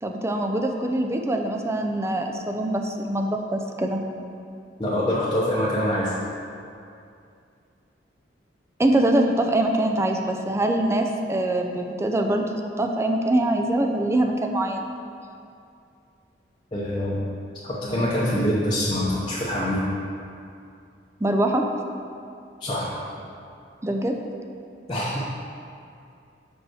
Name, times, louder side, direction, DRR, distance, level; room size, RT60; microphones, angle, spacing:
voice 1, 0.0-4.0 8.8-14.9 18.0-18.1 21.2-21.7 23.8-24.2, right 1 dB, 15° right, 3 dB, 0.4 m, -23 dB
voice 2, 4.8-6.1 16.7-17.2 17.6-19.9 22.6-22.9 24.9-25.2, equal, 25° left, -8 dB, 0.8 m, -25 dB
5.2 x 4.9 x 6.2 m, 2.5 s
head